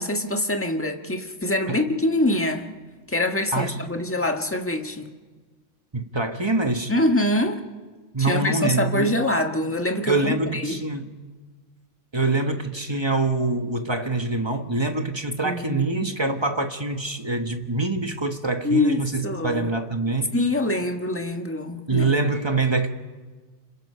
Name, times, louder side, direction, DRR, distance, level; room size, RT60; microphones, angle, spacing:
voice 1, 0.0-2.7 3.1-5.1 6.9-7.6 8.3-10.8 15.4-16.1 18.6-19.7 20.3-22.1, left 1 dB, 10° left, 1.4 m, -24 dB
voice 2, 3.5-3.9 5.9-6.9 8.1-9.3 10.1-11.2 12.1-20.3 21.9-22.9, right 3 dB, 20° right, 1.2 m, -25 dB
29.0 x 26.5 x 5.6 m
omnidirectional pair, 1.3 m